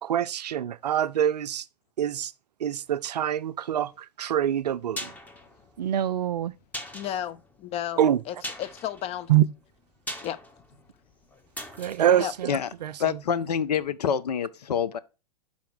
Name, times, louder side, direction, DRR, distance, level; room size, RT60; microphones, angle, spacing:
voice 1, 0.0-1.7 2.0-2.3 2.6-5.1 5.8-6.5 8.0-8.2 9.3-9.5 11.8-13.2, right 10 dB, 85° right, 0.5 m, -25 dB
sound 1, 4.5-13.4 13.7-13.8, left 1 dB, 10° left, 1.1 m, -42 dB
voice 2, 6.9-8.0 8.3-9.3 10.2-10.4 12.1-12.3, left 11 dB, 30° left, 0.5 m, -33 dB
voice 3, 13.0-15.0, left 8 dB, 80° left, 0.7 m, -26 dB
5.7 x 4.2 x 6.2 m
hypercardioid pair, 105°, 20 cm